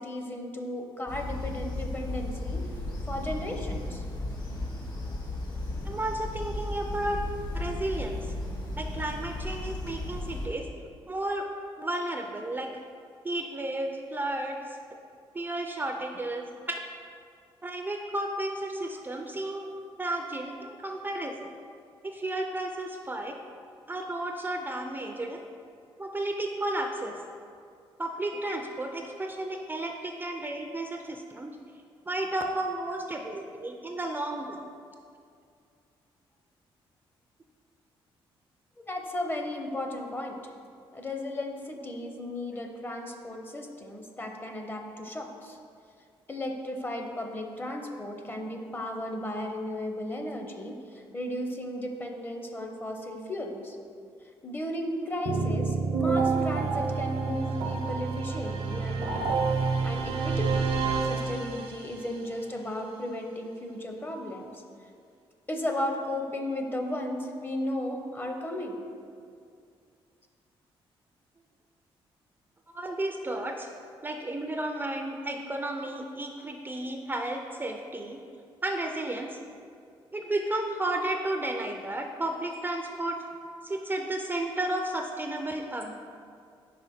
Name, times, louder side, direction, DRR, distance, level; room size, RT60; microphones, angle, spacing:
voice 1, 0.0-2.7 3.1-4.0 38.9-40.4 40.9-45.6 46.3-53.8 54.4-59.2 59.8-60.7 61.0-64.6 65.5-68.9, left 1 dB, 20° left, 3 dB, 0.7 m, -35 dB
sound 1, 1.1-10.5, left 2 dB, 45° left, 1.2 m, -35 dB
voice 2, 5.8-7.2 7.5-8.3 8.8-10.7 11.1-11.5 11.8-12.7 13.2-14.6 15.3-16.8 17.6-19.7 20.0-21.5 22.0-23.4 23.9-25.4 26.0-27.1 28.0-31.5 32.1-34.6 72.7-73.7 74.0-78.2 78.6-79.4 80.1-83.2 83.6-85.9, right 1 dB, 20° right, 3 dB, 0.4 m, -33 dB
sound 2, 55.2-62.0, right 4 dB, 80° right, 0.7 m, -28 dB
5.1 x 4.9 x 4.2 m, 2.3 s
cardioid pair, 95°, 10 cm